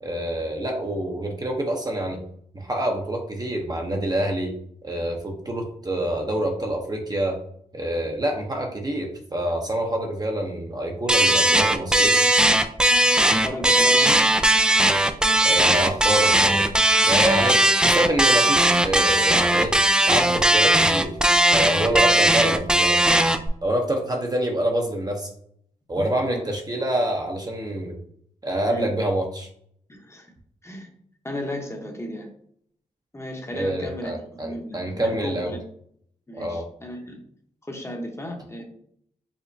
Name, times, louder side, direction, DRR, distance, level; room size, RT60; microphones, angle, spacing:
voice 1, 0.0-2.2 2.5-4.5 4.8-7.4 7.7-12.2 15.4-16.6 17.0-19.7 20.1-21.2 21.5-23.1 23.6-25.3 25.9-28.0 28.4-29.5 33.5-35.5 36.3-36.7, right 1 dB, 25° right, 1 dB, 0.7 m, -26 dB
sound 1, 11.1-23.5, right 1 dB, 5° right, 0.3 m, -18 dB
voice 2, 13.2-14.2 26.2-26.4 28.7-28.9 29.9-30.3 30.6-30.9 31.2-32.3 33.1-35.6 36.3-37.2 37.6-38.6, left 1 dB, 20° left, 1 dB, 0.9 m, -35 dB
5.0 x 2.1 x 2.6 m, 0.66 s
cardioid pair, 50°, 15 cm